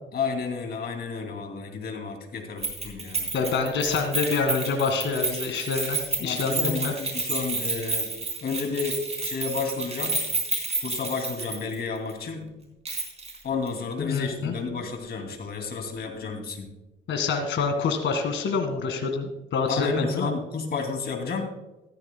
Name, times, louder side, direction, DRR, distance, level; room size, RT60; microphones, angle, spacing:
voice 1, 0.1-3.3 6.2-8.1 8.4-10.2 10.8-12.5 13.4-16.7 19.7-21.4, left 5 dB, 55° left, 4 dB, 2.7 m, -31 dB
Keys jangling, 2.6-11.8 12.1-12.2 12.8-13.4 13.7-13.8, right 3 dB, 35° right, 4.2 m, -30 dB
voice 2, 3.3-6.9 14.0-14.5 17.1-20.3, left 5 dB, 70° left, 4 dB, 1.9 m, -26 dB
14.5 x 14.0 x 2.3 m, 0.99 s
cardioid pair, 90°, 20 cm